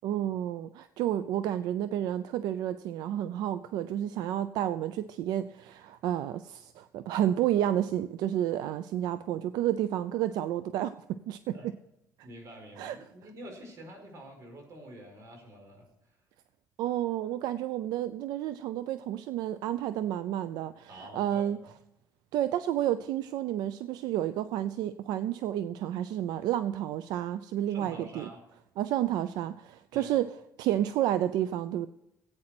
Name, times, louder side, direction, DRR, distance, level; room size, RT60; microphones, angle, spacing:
voice 1, 0.0-11.6 12.2-12.3 12.8-13.0 16.8-21.6 22.3-28.3 28.8-30.3 30.6-31.9, right 12 dB, 80° right, 13 dB, 0.5 m, -30 dB
voice 2, 12.2-15.9 20.9-21.4 27.7-28.4 29.9-30.2, right 1 dB, 50° right, 3 dB, 4.8 m, -47 dB
15.0 x 8.8 x 6.0 m, 0.85 s
cardioid pair, 130°, 7 cm